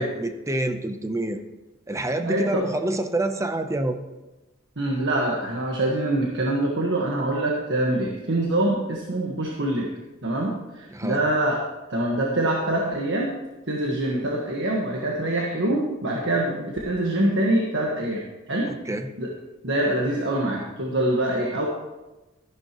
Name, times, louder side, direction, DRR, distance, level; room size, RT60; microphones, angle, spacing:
voice 1, 0.0-1.4 1.9-4.0 10.9-11.2 18.7-19.1, right 1 dB, 15° right, 8 dB, 0.7 m, -27 dB
voice 2, 2.2-2.6 4.8-9.9 10.2-11.6 11.9-13.3 13.7-18.7 19.2-19.3 19.6-21.7, right 1 dB, 65° right, -1 dB, 1.4 m, -24 dB
13.5 x 11.0 x 3.0 m, 1.1 s
head